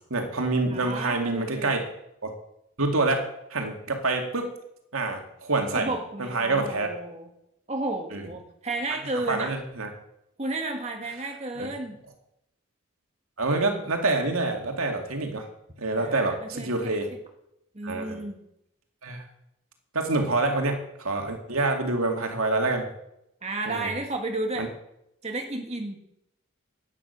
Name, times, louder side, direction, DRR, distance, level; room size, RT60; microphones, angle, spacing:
voice 1, 0.1-1.8 2.2-2.3 2.8-4.6 4.9-5.9 6.2-6.9 8.1-8.3 9.3-9.9 11.6-11.7 13.4-15.5 15.8-17.1 17.8-18.2 19.0-19.2 19.9-22.9 23.7-23.9 24.6-24.7, right 2 dB, 80° right, 3 dB, 2.4 m, -27 dB
voice 2, 0.7-1.8 5.7-7.3 7.7-9.5 10.4-12.0 16.0-17.0 17.7-18.4 23.4-24.7 25.2-26.0, right 2 dB, 30° right, 2 dB, 1.7 m, -32 dB
11.0 x 9.9 x 6.9 m, 0.81 s
head